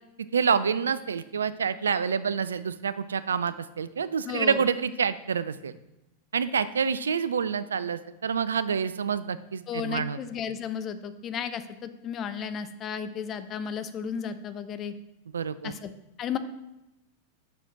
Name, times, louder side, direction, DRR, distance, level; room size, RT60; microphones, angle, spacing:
voice 1, 0.3-5.7 6.3-10.2 15.3-15.8, right 6 dB, 70° right, 15 dB, 0.3 m, -27 dB
voice 2, 4.2-4.7 9.7-14.9 15.6-15.9 16.2-16.4, left 7 dB, 30° left, 12 dB, 0.5 m, -34 dB
5.8 x 4.9 x 5.0 m, 0.92 s
figure-of-eight pair, 90°, 0 cm